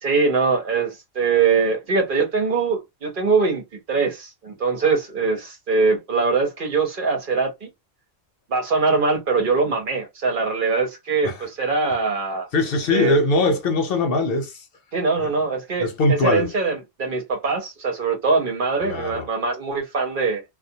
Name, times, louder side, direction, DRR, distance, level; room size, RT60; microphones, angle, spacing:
voice 1, 0.0-3.6 3.9-7.7 8.5-12.5 12.9-13.2 14.9-20.4, right 4 dB, 55° right, 0.9 m, -22 dB
voice 2, 12.5-14.6 15.2-15.3 15.8-16.5 18.8-19.3, left 2 dB, 60° left, 0.8 m, -21 dB
2.3 x 2.2 x 2.7 m
omnidirectional pair, 1.1 m